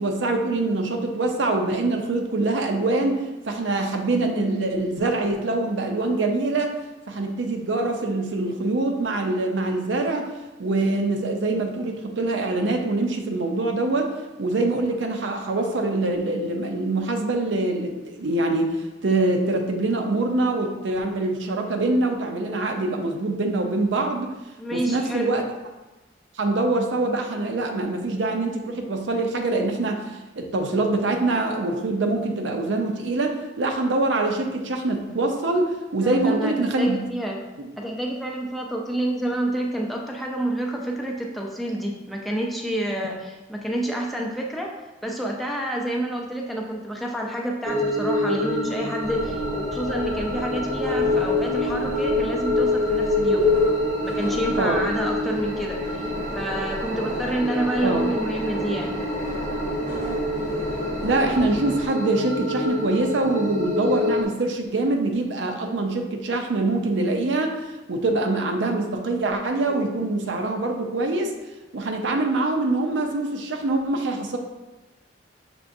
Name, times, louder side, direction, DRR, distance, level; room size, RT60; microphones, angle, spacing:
voice 1, 0.0-6.7 7.1-10.3 10.6-14.1 14.4-24.3 24.7-25.4 26.4-37.0 37.6-37.7 43.0-43.1 54.5-54.8 57.8-58.0 61.0-67.6 67.9-71.3 71.7-74.4, right 2 dB, 80° right, 3 dB, 0.6 m, -24 dB
voice 2, 24.6-25.4 36.0-37.4 37.8-44.8 45.0-53.6 54.0-56.0 56.3-59.1, right 1 dB, ahead, -1 dB, 0.5 m, -28 dB
sound 1, 47.6-64.2, left 2 dB, 40° right, 0.7 m, -26 dB
sound 2, 49.0-61.9, left 1 dB, 65° left, 0.9 m, -34 dB
6.0 x 3.3 x 2.6 m, 1.1 s
head